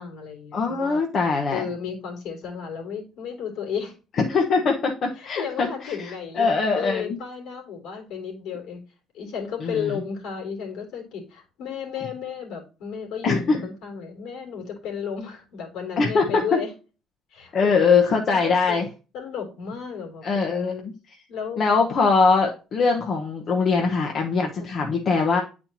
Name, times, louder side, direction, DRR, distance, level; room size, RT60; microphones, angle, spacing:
voice 1, 0.0-1.0 1.5-3.9 5.1-6.5 6.7-8.8 9.1-16.7 17.3-18.8 19.1-20.9 21.3-21.6 23.8-23.9 24.6-24.7, left 7 dB, 75° left, 2 dB, 2.8 m, -33 dB
voice 2, 0.5-1.6 4.3-7.2 9.6-9.9 13.2-13.6 16.0-16.6 17.5-18.8 20.2-20.9 21.6-25.4, left 4 dB, 55° left, 2 dB, 1.0 m, -22 dB
8.7 x 4.4 x 2.9 m, 0.32 s
supercardioid pair, 80°, 0 cm